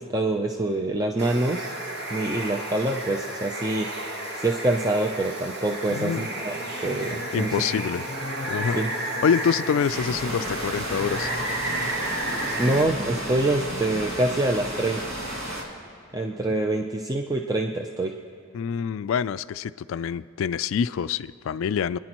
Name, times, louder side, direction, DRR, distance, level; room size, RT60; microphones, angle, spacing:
voice 1, 0.0-1.7 2.1-3.9 4.4-6.6 6.8-7.5 8.8-8.9 12.6-15.1 16.1-18.1, right 2 dB, 15° right, 2 dB, 0.5 m, -25 dB
Water, 1.2-12.8, right 1 dB, 50° right, 1.3 m, -32 dB
voice 2, 5.9-6.3 7.3-8.0 8.5-8.8 9.2-11.3 18.5-22.0, left 7 dB, 75° left, 15 dB, 0.3 m, -26 dB
Singing / Musical instrument, 5.9-16.0, left 2 dB, 45° left, 0.8 m, -41 dB
sound 1, 9.9-15.6, right 1 dB, 70° right, 2.5 m, -33 dB
29.5 x 10.5 x 3.0 m, 2.5 s
head